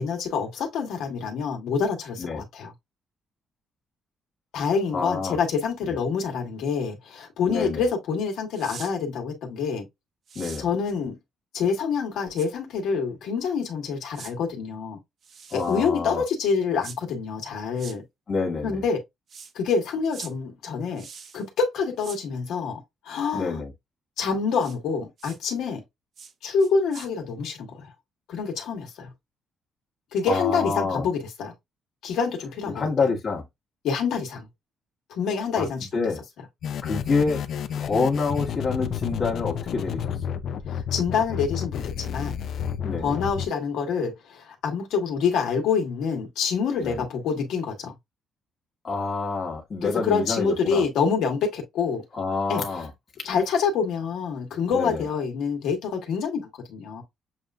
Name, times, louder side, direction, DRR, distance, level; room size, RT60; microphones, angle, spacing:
voice 1, 0.0-2.7 4.5-9.9 10.6-11.1 11.5-15.0 15.5-18.0 18.6-19.0 19.5-21.1 21.3-23.6 24.2-25.8 26.4-27.9 28.3-29.1 30.1-31.5 32.0-33.1 33.8-34.5 35.1-35.9 40.7-42.4 43.0-47.9 49.8-52.0 52.5-52.8 53.2-57.0, left 5 dB, 80° left, 1.4 m, -27 dB
voice 2, 4.9-5.4 5.9-6.0 7.5-7.8 10.3-10.7 15.5-16.2 18.3-18.8 23.3-23.7 30.3-31.1 32.7-33.4 35.5-35.7 35.9-36.2 36.8-37.4 37.8-40.0 40.3-40.4 42.8-43.1 46.8-47.1 48.8-50.8 52.1-52.9 54.7-55.0, left 4 dB, 40° left, 1.4 m, -27 dB
sound 1, 8.5-8.9 10.3-10.6 12.4-12.5 14.1-14.3 15.2-15.9 16.8-17.0 17.8-18.0 19.3-19.5 20.1-20.3 21.0-21.4 22.0-22.2 24.6-24.8 25.2-25.4 26.2-26.3 26.6-27.1, right 6 dB, 55° right, 0.8 m, -42 dB
sound 2, 36.6-43.5, left 8 dB, 65° left, 0.5 m, -31 dB
7.1 x 2.5 x 2.3 m
cardioid pair, 120°, 0 cm